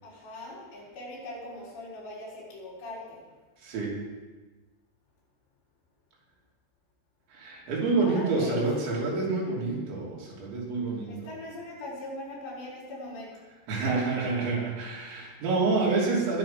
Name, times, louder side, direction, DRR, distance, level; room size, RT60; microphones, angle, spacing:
voice 1, 0.0-3.2 8.0-8.6 11.1-13.3, left 1 dB, 75° left, -7 dB, 6.6 m, -40 dB
voice 2, 3.6-4.0 7.3-11.1 13.7-16.4, right 3 dB, 90° right, -3 dB, 5.3 m, -28 dB
20.5 x 6.9 x 5.8 m, 1.3 s
omnidirectional pair, 5.0 m